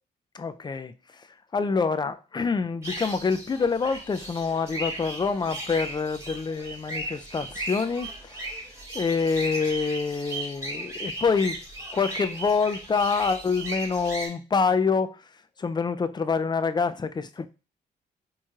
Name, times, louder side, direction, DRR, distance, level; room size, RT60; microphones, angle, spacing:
voice 1, 0.3-1.3 1.5-8.5 8.9-11.6 11.9-15.2 15.6-17.5, left 5 dB, 25° left, 0.4 m, -26 dB
sound 1, 2.8-14.3, right 1 dB, 15° right, 2.1 m, -36 dB
4.4 x 3.0 x 2.3 m
cardioid pair, 70°, 18 cm